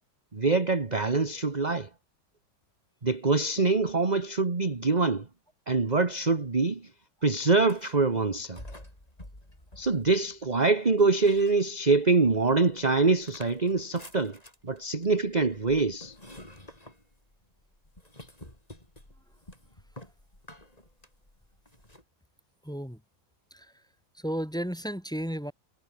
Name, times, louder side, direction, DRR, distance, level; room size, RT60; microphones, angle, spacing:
voice 1, 0.3-1.9 3.0-5.3 5.7-6.9 7.2-8.6 9.8-16.2, right 3 dB, 20° right, 1.6 m, -25 dB
sound 1, 7.6-8.0 8.6-10.5 11.0-12.1 12.5-22.0, left 1 dB, 15° left, 5.9 m, -50 dB
voice 2, 22.6-23.0 23.5-23.7 24.1-25.5, equal, ahead, 2.7 m, -33 dB
omnidirectional pair, 2.2 m